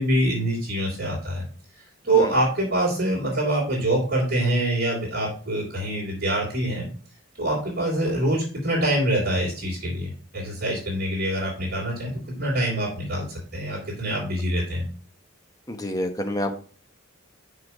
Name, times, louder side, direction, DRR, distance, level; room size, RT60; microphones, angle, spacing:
voice 1, 0.0-1.4 2.0-6.9 7.4-12.1 12.4-14.8, right 1 dB, 45° right, -8 dB, 3.3 m, -25 dB
voice 2, 15.7-16.6, left 1 dB, 15° left, 5 dB, 1.0 m, -28 dB
6.4 x 5.8 x 4.9 m, 0.40 s
head